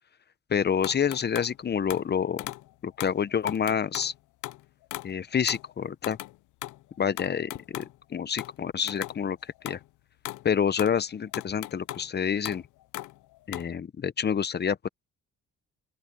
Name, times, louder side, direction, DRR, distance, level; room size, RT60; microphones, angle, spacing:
voice 1, 0.5-2.5 2.8-4.1 5.0-6.2 7.0-9.4 9.6-9.8 10.4-12.6 13.5-14.9, left 7 dB, 35° left, 0.8 m, -28 dB
sound 1, 0.8-1.6 1.9-2.1 2.4-2.7 3.0-4.2 4.4-5.1 5.5-5.7 6.0-6.4 6.6-8.0 8.4-8.6 8.9-9.2 9.6-9.9 10.3-10.5 10.7-12.1 12.5-13.7, left 17 dB, 80° left, 0.6 m, -38 dB
open air
cardioid pair, 90°, 30 cm